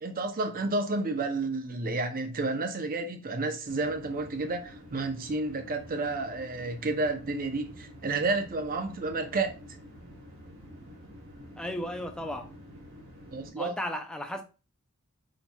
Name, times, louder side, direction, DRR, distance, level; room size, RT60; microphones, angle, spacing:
voice 1, 0.0-9.6 13.3-13.7, right 3 dB, 40° right, 0.6 m, -31 dB
sound 1, 3.7-13.5, equal, 60° right, 1.1 m, -49 dB
voice 2, 11.6-12.5 13.6-14.4, left 1 dB, 5° left, 0.3 m, -35 dB
4.2 x 2.9 x 2.2 m
head